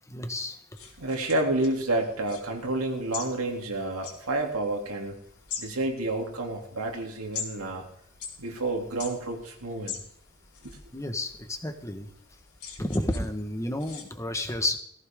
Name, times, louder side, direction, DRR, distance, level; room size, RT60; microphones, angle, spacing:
voice 1, 0.1-0.6 10.9-12.1 12.8-14.8, left 1 dB, 15° left, 6 dB, 1.5 m, -31 dB
sound 1, 0.7-14.0, left 6 dB, 80° left, 3.9 m, -44 dB
voice 2, 1.0-5.2 5.6-7.8 8.4-10.0 10.6-10.8, right 2 dB, 80° right, 2 dB, 3.0 m, -29 dB
18.0 x 15.5 x 3.8 m, 0.67 s
head